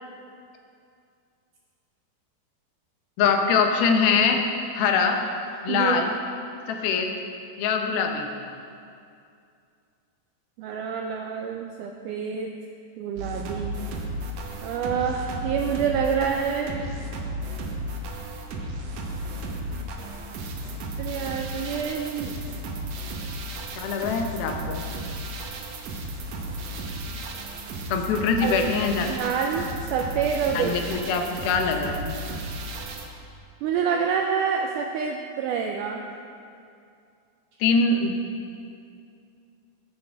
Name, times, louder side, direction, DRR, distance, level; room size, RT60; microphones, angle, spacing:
voice 1, 3.2-4.4 4.7-5.2 5.6-6.1 6.7-7.1 7.6-8.3 23.8-24.8 27.9-29.1 30.5-32.2 37.6-38.2, left 5 dB, 85° left, 4 dB, 2.7 m, -23 dB
voice 2, 5.7-6.0 10.6-12.5 13.0-13.8 14.6-16.8 21.0-22.3 28.4-28.7 29.1-30.7 33.6-36.0, right 7 dB, 90° right, 3 dB, 1.8 m, -27 dB
sound 1, 13.2-33.1, right 1 dB, 70° right, 1.8 m, -34 dB
13.5 x 8.6 x 3.5 m, 2.5 s
omnidirectional pair, 4.2 m